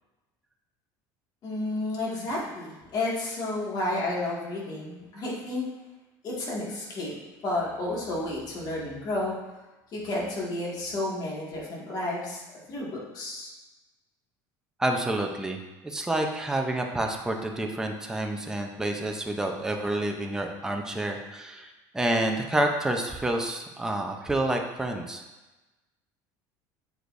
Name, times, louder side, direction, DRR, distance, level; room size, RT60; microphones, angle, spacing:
voice 1, 1.4-5.7 6.2-7.2 7.4-9.4 9.9-12.4 12.7-13.5, left 2 dB, 45° left, -4 dB, 2.0 m, -31 dB
voice 2, 14.8-25.2, right 1 dB, 5° right, 2 dB, 0.6 m, -29 dB
7.8 x 5.0 x 2.6 m, 1.1 s
supercardioid pair, 125°, 10 cm